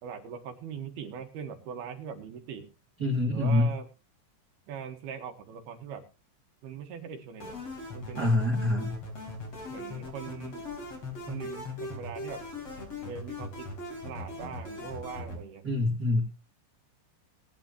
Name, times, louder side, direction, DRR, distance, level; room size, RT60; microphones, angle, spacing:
voice 1, 0.0-2.7 3.3-3.8 4.7-6.0 6.6-7.5 7.9-8.3 9.7-10.6 11.3-12.4 13.0-13.7 14.0-15.6, right 7 dB, 65° right, 6 dB, 3.1 m, -41 dB
voice 2, 3.0-3.7 8.2-9.0 15.6-16.2, left 2 dB, 25° right, 0 dB, 2.5 m, -25 dB
sound 1, 7.4-15.4, left 2 dB, 35° left, 4.7 m, -40 dB
20.0 x 9.2 x 3.0 m, 0.29 s
omnidirectional pair, 5.4 m